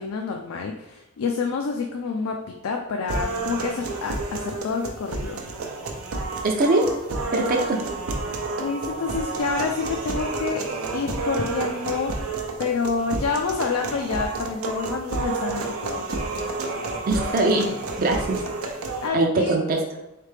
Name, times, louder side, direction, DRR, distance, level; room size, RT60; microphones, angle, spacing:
voice 1, 0.0-5.4 8.6-10.6 10.9-12.1 12.6-16.1 19.0-19.6, left 5 dB, 75° left, 2 dB, 0.4 m, -28 dB
sound 1, 3.1-19.1, right 3 dB, 85° right, 0.6 m, -30 dB
voice 2, 6.4-6.8 7.3-7.8 17.1-17.7 18.0-18.4 19.1-19.8, right 2 dB, 45° right, 1 dB, 0.5 m, -21 dB
3.6 x 3.3 x 3.3 m, 0.93 s
head